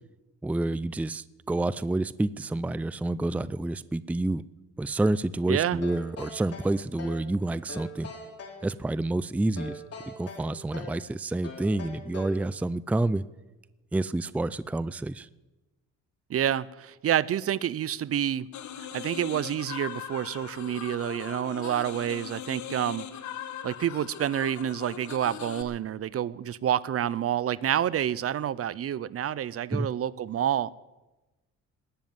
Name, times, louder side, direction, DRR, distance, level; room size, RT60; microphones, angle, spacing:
voice 1, 0.4-4.4 4.8-8.1 8.6-13.2 13.9-15.3 29.7-29.9, right 2 dB, 5° right, 17 dB, 0.4 m, -29 dB
voice 2, 5.5-5.8 16.3-18.5 18.8-23.1 23.6-30.7, right 10 dB, 50° right, 20 dB, 0.6 m, -28 dB
sound 1, 5.8-7.3 7.7-8.6 9.6-11.0 11.4-12.5, left 2 dB, 55° left, 3.7 m, -41 dB
sound 2, 18.5-25.6, left 10 dB, 70° left, 1.3 m, -40 dB
19.5 x 7.3 x 9.5 m, 1.1 s
cardioid pair, 90°, 30 cm